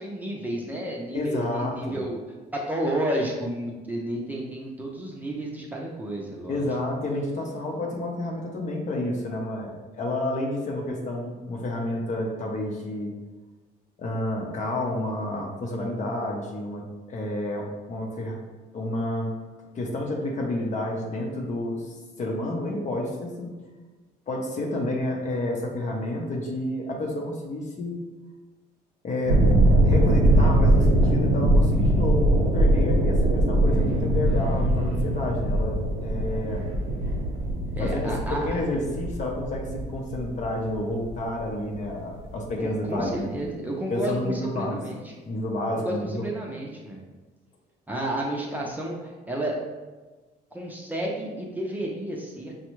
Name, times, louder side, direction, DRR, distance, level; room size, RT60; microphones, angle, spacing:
voice 1, 0.0-2.2 2.5-6.7 37.8-38.5 42.6-45.1 45.8-47.0 47.9-49.6 50.5-52.5, right 1 dB, 10° right, -2 dB, 0.6 m, -31 dB
voice 2, 1.1-2.0 6.5-13.1 14.0-18.4 18.7-19.4 19.7-23.5 24.3-28.0 29.0-29.4 29.8-36.7 37.8-43.3 43.9-44.8 45.2-46.3, left 1 dB, 45° left, 0 dB, 0.8 m, -30 dB
sound 1, 29.2-41.8 42.1-42.5, right 1 dB, 85° right, 0.7 m, -22 dB
5.1 x 2.3 x 3.0 m, 1.3 s
cardioid pair, 110°, 17 cm